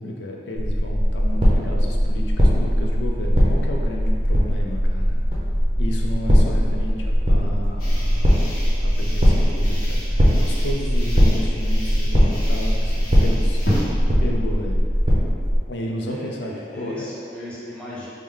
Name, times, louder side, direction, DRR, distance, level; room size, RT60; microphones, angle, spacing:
voice 1, 0.0-5.2 5.8-8.4 8.8-13.9 14.2-14.9 15.7-17.1, left 1 dB, 70° left, 0 dB, 0.5 m, -32 dB
sound 1, 0.6-15.6, equal, 30° right, 0.6 m, -19 dB
sound 2, 7.8-13.8, equal, 50° left, 1.1 m, -33 dB
voice 2, 16.1-18.1, left 1 dB, 5° left, -9 dB, 0.8 m, -36 dB
4.5 x 2.1 x 3.7 m, 2.4 s
head